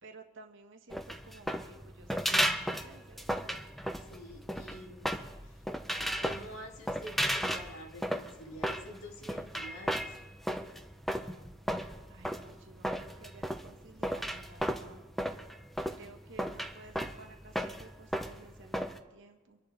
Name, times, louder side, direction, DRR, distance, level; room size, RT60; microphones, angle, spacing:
voice 1, 0.0-3.5 12.1-15.1 15.9-19.6, right 3 dB, 65° right, 4 dB, 1.6 m, -54 dB
sound 1, 0.9-19.0, equal, ahead, 0.8 m, -35 dB
voice 2, 4.0-5.6 6.0-10.2, left 1 dB, 85° left, 0 dB, 2.4 m, -48 dB
25.5 x 11.0 x 3.5 m, 1.3 s
head